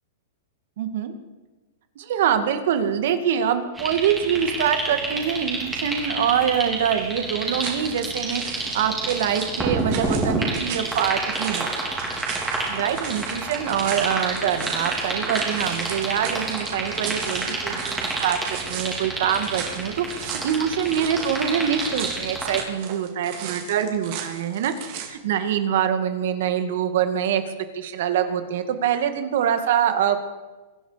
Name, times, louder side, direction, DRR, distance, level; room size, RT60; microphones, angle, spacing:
voice 1, 0.8-1.1 2.0-11.7 12.7-18.4 18.7-24.7 25.0-27.4 27.7-30.3, right 8 dB, 65° right, 8 dB, 2.1 m, -24 dB
sound 1, 3.8-22.6, right 2 dB, 10° right, 3.8 m, -29 dB
sound 2, 7.6-25.1, right 8 dB, 50° right, 3.3 m, -37 dB
24.0 x 11.0 x 5.1 m, 1.2 s
hypercardioid pair, 145°, 0 cm